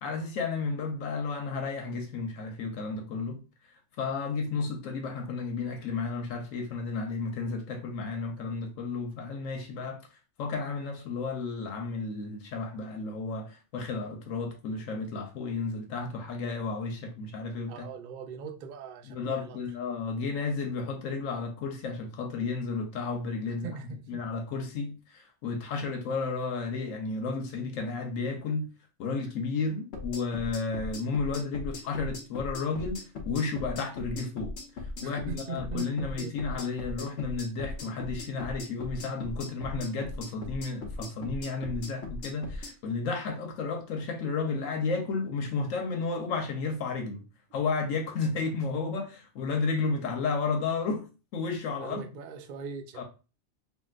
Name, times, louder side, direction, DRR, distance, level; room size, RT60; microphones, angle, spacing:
voice 1, 0.0-3.4 4.0-10.0 10.4-17.9 19.1-23.7 24.1-28.7 29.0-34.5 35.0-47.2 47.5-51.1 51.3-52.0 53.0-53.1, left 4 dB, 90° left, 1.1 m, -32 dB
voice 2, 17.7-19.6 23.6-24.2 35.0-36.3 51.8-53.0, right 5 dB, 65° right, 0.5 m, -40 dB
sound 1, 29.9-42.7, left 2 dB, 65° left, 1.0 m, -39 dB
3.6 x 2.4 x 2.4 m
omnidirectional pair, 1.3 m